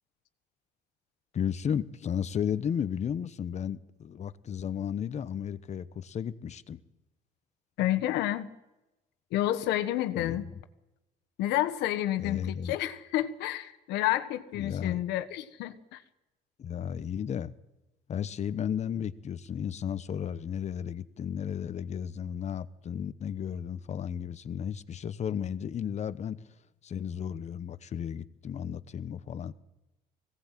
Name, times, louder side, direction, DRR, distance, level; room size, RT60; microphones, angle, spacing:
voice 1, 1.3-6.8 10.1-10.4 12.2-12.7 14.5-15.0 16.6-17.5 18.1-26.4 26.8-29.5, left 8 dB, 40° left, 14 dB, 1.0 m, -34 dB
voice 2, 7.8-8.5 9.3-10.5 11.4-16.0, left 13 dB, 90° left, 10 dB, 1.3 m, -30 dB
21.0 x 17.5 x 7.5 m, 0.99 s
cardioid pair, 110°, 17 cm